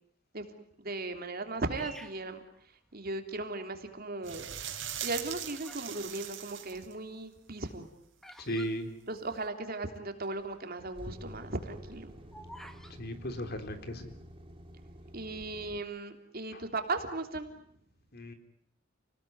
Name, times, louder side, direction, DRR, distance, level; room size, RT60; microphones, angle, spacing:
voice 1, 0.8-2.4 2.9-4.5 5.0-7.9 9.1-12.1 15.1-17.5, right 2 dB, 50° right, 6 dB, 3.2 m, -37 dB
Bird vocalization bird call bird song, 1.7-3.2 3.8-4.3 5.0-6.0 6.2-9.7 10.0-10.1 10.3-10.6 11.1-13.0, equal, ahead, 1.9 m, -51 dB
sound 1, 4.2-6.9 9.2-9.3, right 10 dB, 65° right, 4.4 m, -40 dB
voice 2, 8.4-8.9 13.0-14.1 16.5-16.6 18.1-18.3, equal, 50° left, 7 dB, 3.5 m, -36 dB
sound 2, 10.2-15.8, equal, 25° right, 2.6 m, -49 dB
29.5 x 19.5 x 9.5 m, 0.68 s
head